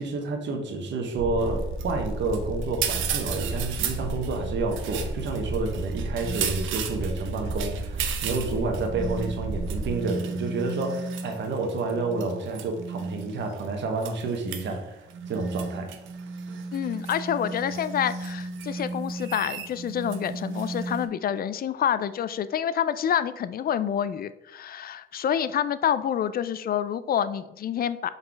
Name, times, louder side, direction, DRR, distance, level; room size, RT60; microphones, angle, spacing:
voice 1, 0.0-15.9, right 3 dB, 65° right, 3 dB, 1.1 m, -29 dB
sound 1, 1.2-9.9, right 2 dB, 30° right, 0.7 m, -33 dB
sound 2, 1.4-21.1, right 5 dB, 85° right, 0.7 m, -35 dB
voice 2, 16.7-28.1, left 9 dB, 50° left, 14 dB, 0.4 m, -27 dB
5.2 x 4.2 x 4.6 m, 0.89 s
cardioid pair, 90°, 20 cm